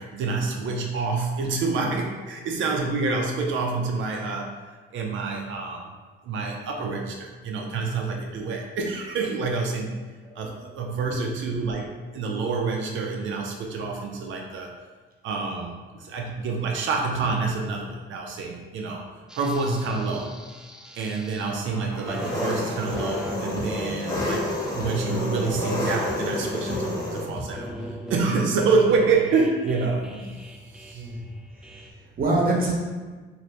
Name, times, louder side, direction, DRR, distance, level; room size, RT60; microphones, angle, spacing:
voice 1, 0.0-5.9 6.2-10.0 10.4-14.7 15.2-19.1 19.3-20.3 21.0-31.1, right 4 dB, 75° right, 1 dB, 0.5 m, -27 dB
voice 2, 10.3-10.6 11.1-11.3 16.6-16.7 20.1-20.2 30.9-31.2 32.2-32.7, right 2 dB, 45° right, -2 dB, 0.8 m, -26 dB
sound 1, 19.3-31.9, equal, 5° right, 0.3 m, -39 dB
Engine, 22.0-27.3, left 1 dB, 20° left, 1.0 m, -29 dB
sound 2, 22.9-23.1 23.6-23.8 24.2-24.4 24.8-25.0 25.3-25.8 26.1-26.2 26.7-26.9 27.4-27.5, left 2 dB, 40° left, 0.9 m, -36 dB
2.6 x 2.6 x 3.2 m, 1.4 s
cardioid pair, 90°, 20 cm